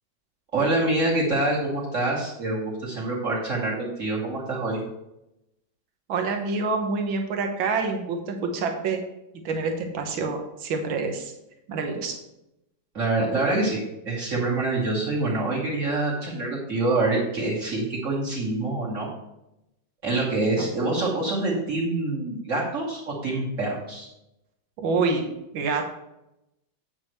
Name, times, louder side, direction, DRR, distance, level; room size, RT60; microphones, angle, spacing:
voice 1, 0.5-4.8 12.9-19.1 20.0-24.1, right 2 dB, 35° right, -4 dB, 2.9 m, -26 dB
voice 2, 6.1-9.0 9.5-11.3 11.7-12.2 24.8-25.3 25.5-25.8, right 4 dB, 70° right, 4 dB, 1.9 m, -27 dB
8.8 x 8.7 x 3.1 m, 0.87 s
omnidirectional pair, 2.3 m